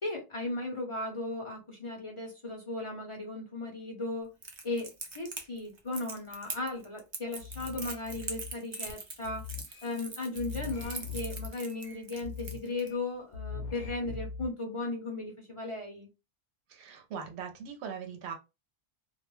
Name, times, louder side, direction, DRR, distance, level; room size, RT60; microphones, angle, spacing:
voice 1, 0.0-4.3 4.6-9.5 9.8-16.1, left 2 dB, 35° left, 0.6 m, -36 dB
Crackle, 4.4-12.9, right 3 dB, 40° right, 0.4 m, -42 dB
sound 1, 7.4-8.9 9.2-10.0 10.4-13.0 13.3-14.5, left 5 dB, 75° left, 0.8 m, -41 dB
voice 2, 16.7-18.3, right 7 dB, 70° right, 0.9 m, -40 dB
2.3 x 2.1 x 3.0 m
omnidirectional pair, 1.2 m